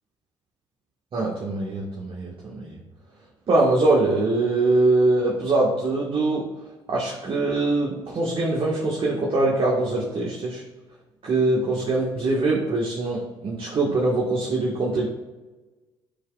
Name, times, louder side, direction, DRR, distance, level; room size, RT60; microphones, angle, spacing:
voice 1, 1.1-2.8 3.5-6.5 6.9-10.6 11.2-15.1, right 2 dB, 40° right, -4 dB, 1.7 m, -23 dB
14.5 x 4.9 x 2.5 m, 1.2 s
figure-of-eight pair, 50°, 13 cm